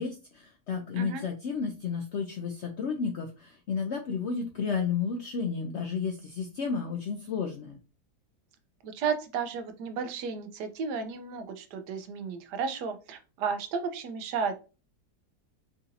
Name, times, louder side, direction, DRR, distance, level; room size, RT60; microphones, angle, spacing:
voice 1, 0.0-7.8, left 5 dB, 75° left, 3 dB, 0.6 m, -32 dB
voice 2, 8.8-14.6, right 6 dB, 90° right, 7 dB, 1.3 m, -33 dB
4.9 x 2.8 x 2.5 m, 0.32 s
omnidirectional pair, 1.7 m